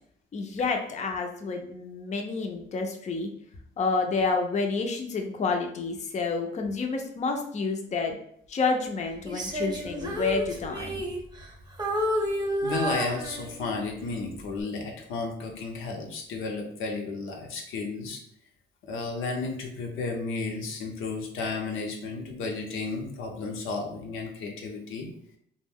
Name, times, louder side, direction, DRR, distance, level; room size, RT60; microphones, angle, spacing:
voice 1, 0.3-3.3 3.8-8.2 8.5-11.0, left 4 dB, 35° left, 3 dB, 0.5 m, -29 dB
Female singing, 9.3-11.5 11.8-13.8 14.4-14.6, equal, 20° right, 0.7 m, -30 dB
voice 2, 12.6-18.2 18.8-25.1, left 3 dB, 85° left, 2 dB, 0.7 m, -33 dB
2.5 x 2.1 x 3.5 m, 0.68 s
cardioid pair, 90°, 20 cm